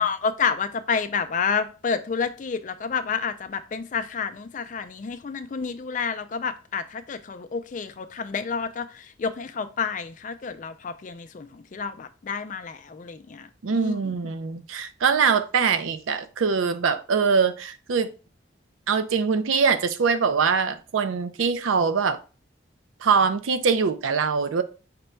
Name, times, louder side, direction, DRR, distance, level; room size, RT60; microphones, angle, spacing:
voice 1, 0.0-14.0, left 6 dB, 40° left, 0.3 m, -29 dB
voice 2, 13.6-18.1 18.9-22.2 23.0-24.6, right 5 dB, 80° right, 0.5 m, -23 dB
5.1 x 2.2 x 4.4 m
head